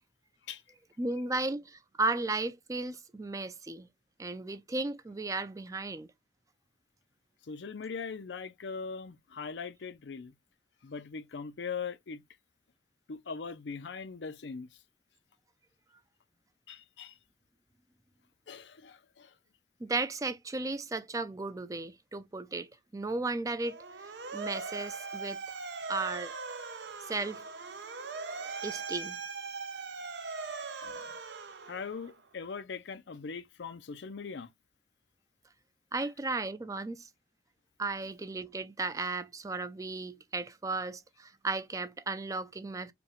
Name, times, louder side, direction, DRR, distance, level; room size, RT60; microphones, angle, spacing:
voice 1, 1.0-3.9 4.2-6.1 19.8-25.6 25.9-26.3 27.1-27.4 28.6-29.2 35.9-37.1 37.8-42.9, right 3 dB, 20° right, 0.4 m, -35 dB
voice 2, 7.5-10.3 10.8-12.2 13.1-14.7 16.7-17.2 18.5-19.3 30.8-30.9 31.6-34.5, left 5 dB, 80° left, 0.5 m, -40 dB
Motor vehicle (road) / Siren, 23.6-32.2, right 4 dB, 75° right, 0.7 m, -40 dB
5.1 x 2.3 x 3.0 m
head